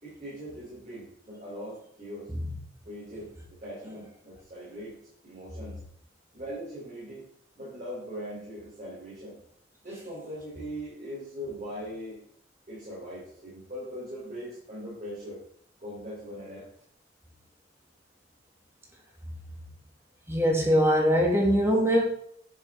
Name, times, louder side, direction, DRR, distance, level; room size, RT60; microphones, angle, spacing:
voice 1, 0.0-2.3 2.9-3.3 3.6-5.0 5.2-5.8 6.3-7.3 7.6-9.4 9.8-12.2 12.7-15.4 15.8-16.7, equal, 40° right, -7 dB, 3.7 m, -40 dB
voice 2, 20.3-22.0, equal, 15° right, -1 dB, 2.3 m, -22 dB
10.5 x 6.8 x 3.6 m, 0.68 s
head